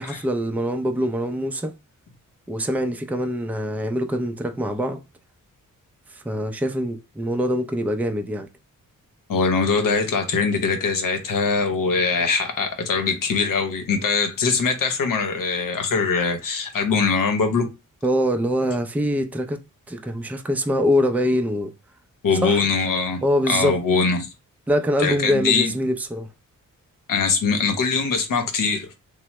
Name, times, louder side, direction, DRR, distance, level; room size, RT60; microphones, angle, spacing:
voice 1, 0.0-1.7 2.5-5.0 6.2-8.5 18.0-19.6 19.9-21.7 22.4-22.6 23.2-23.8 24.7-26.3, equal, 5° right, 0.4 m, -24 dB
voice 2, 9.3-17.7 22.2-23.2 23.5-24.3 25.0-25.7 27.1-28.9, left 4 dB, 75° left, 0.8 m, -22 dB
3.2 x 2.0 x 2.9 m
cardioid pair, 80°, 33 cm